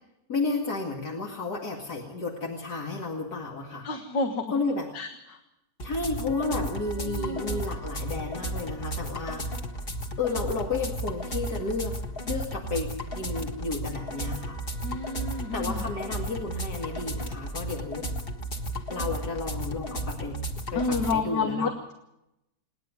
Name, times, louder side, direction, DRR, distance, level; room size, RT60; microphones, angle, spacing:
voice 1, 0.3-3.9 4.5-4.9 5.8-9.4 10.2-11.9 12.3-12.9 13.1-14.6 15.5-18.1 18.9-20.3 20.7-21.7, left 3 dB, 65° left, 1 dB, 2.8 m, -32 dB
voice 2, 3.8-4.5 4.9-5.1 7.0-7.6 14.8-15.7 20.8-21.9, left 4 dB, 90° left, 7 dB, 2.1 m, -30 dB
sound 1, 5.8-21.2, right 1 dB, 35° left, 1.8 m, -34 dB
27.5 x 10.0 x 9.5 m, 0.86 s
omnidirectional pair, 1.8 m